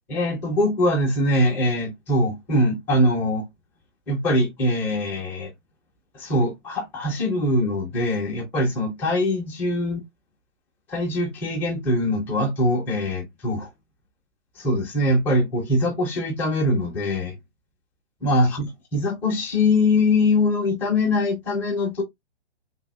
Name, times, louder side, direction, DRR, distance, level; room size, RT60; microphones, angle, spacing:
voice 1, 0.1-3.4 4.1-5.5 6.1-10.0 10.9-13.7 14.6-17.3 18.2-18.7 18.9-22.0, left 1 dB, 5° left, 0.4 m, -22 dB
3.3 x 2.6 x 2.4 m
hypercardioid pair, 145°, 34 cm